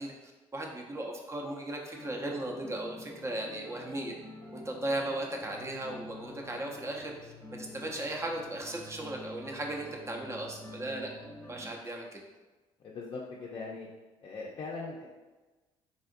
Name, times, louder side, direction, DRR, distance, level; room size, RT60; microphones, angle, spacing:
voice 1, 0.0-4.1 4.5-7.3 7.6-11.1 11.5-12.2, right 1 dB, 25° right, 0 dB, 0.6 m, -37 dB
sound 1, 1.9-11.7, left 1 dB, 15° left, 0.8 m, -48 dB
voice 2, 12.8-13.9 14.2-15.1, left 3 dB, 45° left, -3 dB, 0.5 m, -40 dB
3.7 x 2.4 x 2.6 m, 1.2 s
supercardioid pair, 80°, 12 cm